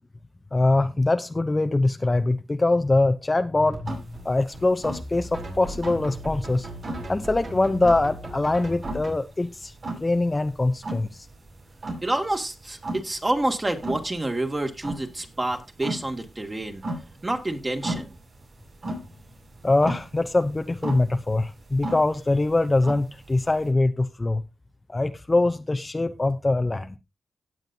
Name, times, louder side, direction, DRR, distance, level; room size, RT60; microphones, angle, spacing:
voice 1, 0.5-4.0 4.2-6.7 7.1-9.7 10.0-11.1 19.6-24.4 24.9-26.9, left 2 dB, 25° left, 0.7 m, -23 dB
sound 1, 3.7-9.2, right 1 dB, 65° right, 4.8 m, -37 dB
sound 2, 3.8-23.7, right 1 dB, 50° right, 7.7 m, -36 dB
voice 2, 12.0-16.8 17.2-18.1, right 1 dB, 25° right, 2.2 m, -28 dB
17.5 x 7.6 x 2.7 m
cardioid pair, 75°, 0 cm